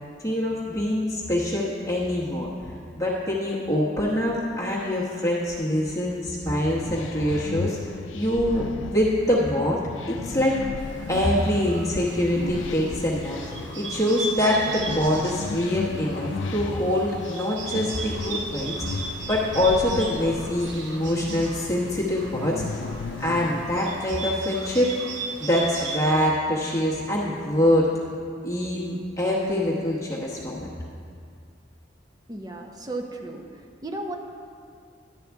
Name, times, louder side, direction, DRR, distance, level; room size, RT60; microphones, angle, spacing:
voice 1, 0.2-2.5 2.9-8.6 8.9-9.8 10.1-10.6 11.1-13.4 13.7-22.8 23.2-24.9 25.4-27.9 28.4-30.7, left 1 dB, 15° left, -6 dB, 1.0 m, -24 dB
sound 1, 6.4-23.8, left 4 dB, 85° left, 0.4 m, -36 dB
Bird, 10.8-26.0, right 2 dB, 65° right, 1.1 m, -37 dB
voice 2, 32.3-33.4 33.8-34.2, right 2 dB, 20° right, 3 dB, 0.7 m, -34 dB
11.5 x 8.6 x 3.5 m, 2.3 s
head